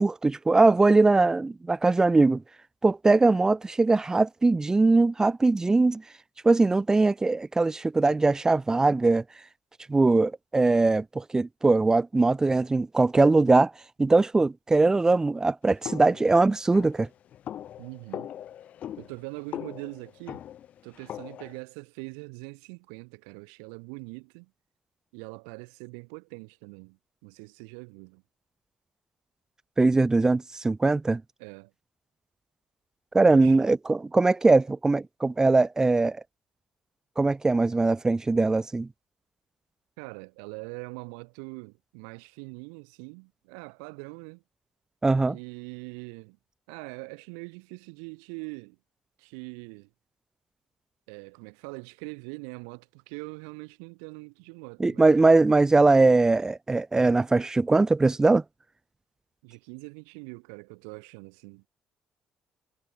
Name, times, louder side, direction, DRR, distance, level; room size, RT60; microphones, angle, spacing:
voice 1, 0.0-2.4 2.8-6.0 6.4-9.2 9.9-13.7 14.0-17.1 29.8-31.2 33.1-36.2 37.2-38.9 45.0-45.4 54.8-58.4, right 3 dB, 25° right, 3.2 m, -21 dB
sound 1, 15.8-21.6, left 10 dB, 65° left, 3.9 m, -40 dB
voice 2, 17.8-18.3 19.0-20.4 20.8-24.5 25.1-28.2 31.4-31.7 33.3-33.6 40.0-44.4 45.3-46.4 46.7-48.8 49.2-49.9 51.1-55.1 59.4-61.7, right 40 dB or more, 90° right, 5.3 m, -42 dB
supercardioid pair, 60°, 3 cm